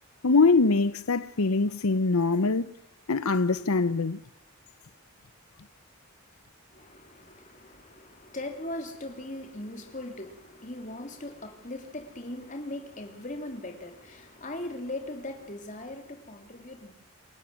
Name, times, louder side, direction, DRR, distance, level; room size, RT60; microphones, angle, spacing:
voice 1, 0.2-2.6 3.1-4.2, left 3 dB, 85° left, 0.8 m, -23 dB
voice 2, 6.7-16.9, left 1 dB, 35° left, 3.1 m, -39 dB
27.5 x 12.5 x 9.2 m
head